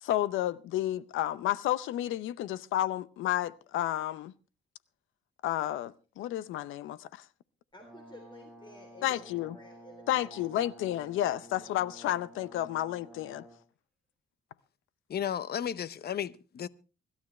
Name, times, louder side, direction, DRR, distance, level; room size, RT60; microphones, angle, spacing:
voice 1, 0.0-4.3 5.4-7.2 9.0-9.6 10.1-13.4, left 13 dB, 85° left, 0.7 m, -31 dB
voice 2, 7.7-10.5, left 1 dB, 25° left, 3.6 m, -53 dB
Brass instrument, 7.8-13.6, right 1 dB, ahead, 6.0 m, -52 dB
voice 3, 15.1-16.7, left 9 dB, 55° left, 0.9 m, -34 dB
24.5 x 12.5 x 3.2 m
cardioid pair, 90°, 20 cm